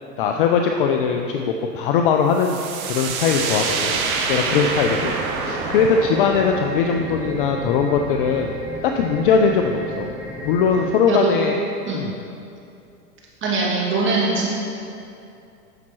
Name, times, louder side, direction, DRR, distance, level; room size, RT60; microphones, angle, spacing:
voice 1, 0.2-4.0 4.3-8.5 8.8-10.1 10.4-11.6 11.9-12.1, left 6 dB, 35° left, 3 dB, 0.4 m, -20 dB
sound 1, 2.3-9.9, right 5 dB, 60° right, 1.2 m, -28 dB
sound 2, 4.4-11.0, equal, 5° right, 0.8 m, -34 dB
voice 2, 13.4-14.5, right 3 dB, 25° right, -4 dB, 2.1 m, -21 dB
11.0 x 7.2 x 3.0 m, 2.6 s
hypercardioid pair, 115°, 48 cm